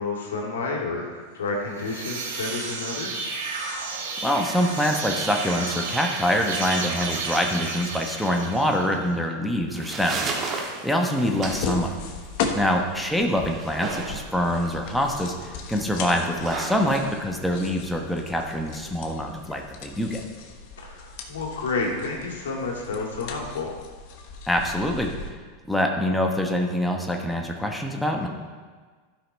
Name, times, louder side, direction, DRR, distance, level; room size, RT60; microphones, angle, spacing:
voice 1, 0.0-3.3 12.4-12.7 20.8-23.7, left 3 dB, 85° left, -1 dB, 2.1 m, -30 dB
sound 1, 1.6-9.0, right 4 dB, 80° right, 1.7 m, -32 dB
voice 2, 4.2-10.6 10.8-11.9 12.5-20.2 24.5-25.1 25.7-28.3, equal, ahead, 1 dB, 1.1 m, -25 dB
sound 2, 9.5-18.5, right 3 dB, 35° right, 1.4 m, -36 dB
sound 3, 11.4-25.3, left 5 dB, 60° left, 1.1 m, -37 dB
12.5 x 5.7 x 4.2 m, 1.5 s
hypercardioid pair, 110°, 0 cm